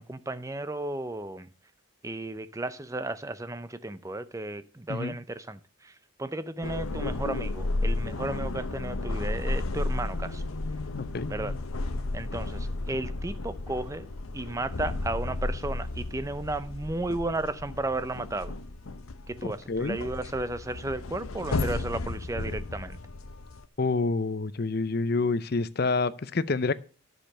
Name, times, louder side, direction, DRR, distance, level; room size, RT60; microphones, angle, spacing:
voice 1, 0.0-1.5 2.0-5.9 6.2-10.4 11.3-11.5 12.1-14.1 14.3-18.5 19.3-23.0, right 2 dB, 15° right, 0.5 m, -34 dB
sound 1, 6.6-23.7, left 2 dB, 85° left, 0.9 m, -33 dB
voice 2, 19.4-20.0 23.8-26.7, left 3 dB, 45° left, 0.5 m, -27 dB
10.5 x 6.7 x 6.6 m
head